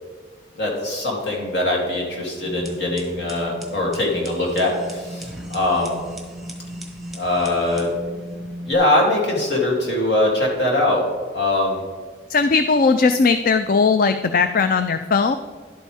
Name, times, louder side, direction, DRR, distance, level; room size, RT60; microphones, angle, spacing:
voice 1, 0.6-6.0 7.2-7.9 8.7-11.0 11.3-11.8, left 2 dB, 65° left, -2 dB, 3.0 m, -22 dB
sound 1, 2.5-8.7, equal, ahead, 1.3 m, -35 dB
voice 2, 12.3-15.4, left 4 dB, 50° left, 9 dB, 0.4 m, -18 dB
11.5 x 8.4 x 3.5 m, 1.5 s
head